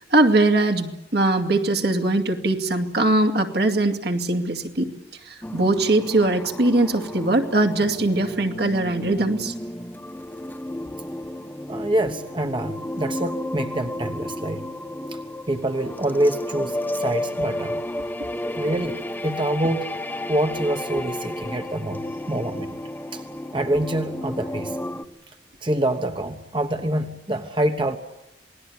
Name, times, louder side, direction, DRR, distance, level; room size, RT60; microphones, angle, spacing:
voice 1, 0.1-4.9 5.3-9.5, right 2 dB, 65° right, 4 dB, 2.5 m, -21 dB
sound 1, 5.4-25.0, left 1 dB, 10° left, 1.2 m, -32 dB
voice 2, 11.7-14.7 15.1-15.2 15.5-17.8 18.5-18.9 19.2-19.9 20.3-22.8 23.1-23.2 23.5-24.8 25.6-28.0, right 1 dB, 30° right, 6 dB, 1.2 m, -26 dB
28.0 x 20.0 x 8.8 m, 0.88 s
head